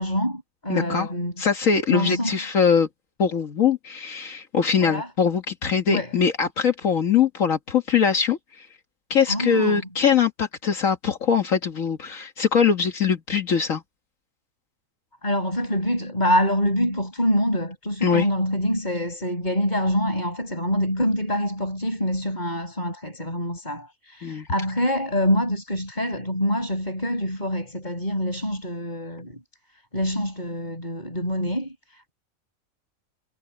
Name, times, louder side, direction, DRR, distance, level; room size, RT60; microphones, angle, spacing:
voice 1, 0.0-1.3 1.9-2.4 4.8-5.1 5.9-6.1 9.3-9.8 15.2-29.4 29.9-32.1, equal, 30° left, 7.1 m, -25 dB
voice 2, 0.7-1.1 1.4-2.9 3.2-8.7 9.1-13.8 18.0-18.3 24.2-24.5, left 6 dB, 70° left, 1.8 m, -22 dB
omnidirectional pair, 1.5 m